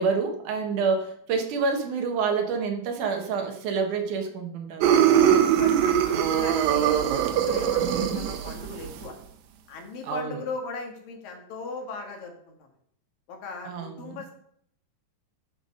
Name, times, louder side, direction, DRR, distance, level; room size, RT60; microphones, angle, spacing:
voice 1, 0.0-4.9 7.8-8.3 10.1-10.3 13.7-14.2, right 5 dB, 70° right, 4 dB, 2.5 m, -28 dB
sound 1, 4.8-9.1, right 9 dB, 90° right, 2.6 m, -22 dB
voice 2, 5.2-7.0 7.3-9.2 9.7-12.7 13.3-14.3, left 3 dB, 80° left, 2 dB, 3.3 m, -38 dB
10.0 x 5.4 x 5.3 m, 0.66 s
omnidirectional pair, 3.9 m